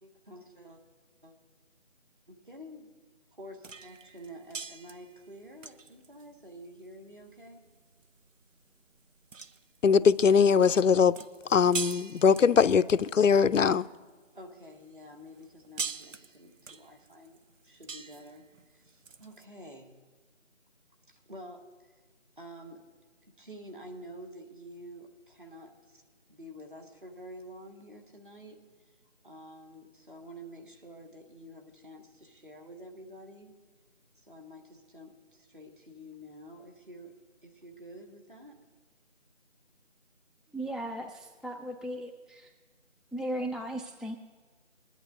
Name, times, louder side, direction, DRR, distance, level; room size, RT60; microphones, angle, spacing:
voice 1, 0.0-0.8 1.2-1.3 2.3-2.9 3.3-7.7 14.3-18.4 18.7-20.0 21.1-21.9 22.4-22.8 23.4-26.0 26.3-28.6 29.2-33.5 34.2-37.2 37.4-38.6, equal, 40° right, 1.8 m, -49 dB
sound 1, 3.6-14.2 14.7-19.4, right 5 dB, 90° right, 0.7 m, -43 dB
voice 2, 9.8-11.2 11.5-13.9, left 6 dB, 90° left, 0.5 m, -21 dB
voice 3, 40.5-42.5 43.1-44.2, right 1 dB, ahead, 0.4 m, -36 dB
21.0 x 11.0 x 2.6 m
figure-of-eight pair, 175°, 37 cm